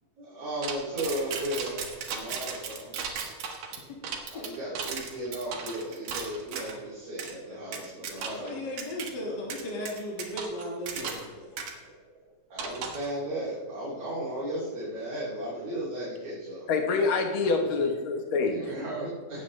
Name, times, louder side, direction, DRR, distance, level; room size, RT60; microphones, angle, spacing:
voice 1, 0.2-2.9 4.3-8.7 9.2-9.3 11.6-12.2 12.5-16.7 17.4-17.5 18.5-19.4, right 1 dB, 45° right, -7 dB, 3.5 m, -35 dB
sound 1, 0.6-6.8 7.2-7.3 7.7-8.5 8.8-9.1 9.5-11.3 11.6-11.7 12.6-13.1, right 6 dB, 70° right, 2.9 m, -36 dB
voice 2, 8.2-11.5 17.4-17.9, left 1 dB, 45° left, -2 dB, 1.5 m, -37 dB
voice 3, 16.7-18.7, left 4 dB, 85° left, 3 dB, 1.1 m, -26 dB
19.0 x 8.6 x 3.2 m, 1.5 s
omnidirectional pair, 4.0 m